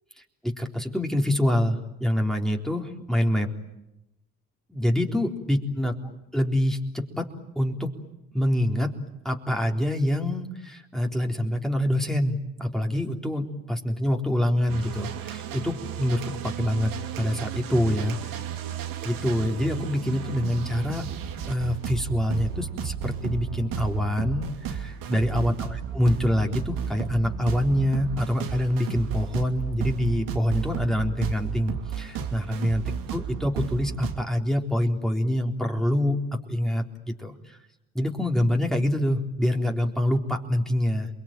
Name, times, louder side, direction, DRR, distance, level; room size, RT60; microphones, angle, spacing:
voice 1, 0.4-3.5 4.7-5.9 6.3-7.3 7.6-7.9 8.3-8.9 9.2-16.9 17.2-18.4 19.0-21.1 21.5-32.8 33.1-36.2 36.5-37.6 37.9-41.1, left 1 dB, ahead, 1 dB, 3.8 m, -26 dB
sound 1, 14.7-34.2, right 8 dB, 75° right, 2.7 m, -33 dB
29.0 x 21.5 x 9.2 m, 0.89 s
supercardioid pair, 75°, 34 cm